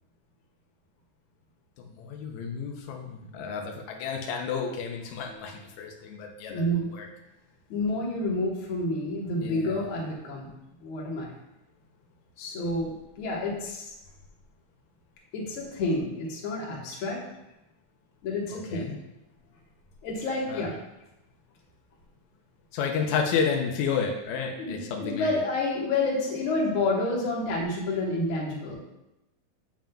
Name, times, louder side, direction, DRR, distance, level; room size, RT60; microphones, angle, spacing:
voice 1, 1.9-7.1 9.4-9.8 18.5-19.0 20.5-20.7 22.7-25.5, left 6 dB, 85° left, 1 dB, 1.6 m, -31 dB
voice 2, 6.5-6.9 7.7-10.5 10.8-11.3 12.4-13.9 15.3-17.2 18.2-18.9 20.0-20.7 24.6-28.8, left 2 dB, 60° left, -2 dB, 1.4 m, -29 dB
7.3 x 7.1 x 2.3 m, 0.93 s
omnidirectional pair, 4.2 m